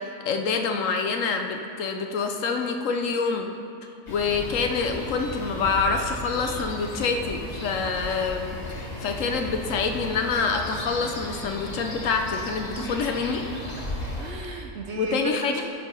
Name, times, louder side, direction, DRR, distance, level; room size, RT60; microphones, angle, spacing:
voice 1, 0.3-3.5 4.1-13.4 14.9-15.6, left 4 dB, 65° left, 4 dB, 1.0 m, -26 dB
sound 1, 4.1-14.3, left 1 dB, 30° left, 1.4 m, -35 dB
voice 2, 12.8-13.4 13.8-13.9 14.2-15.6, right 4 dB, 60° right, 3 dB, 0.8 m, -35 dB
13.5 x 4.6 x 5.4 m, 2.5 s
omnidirectional pair, 1.6 m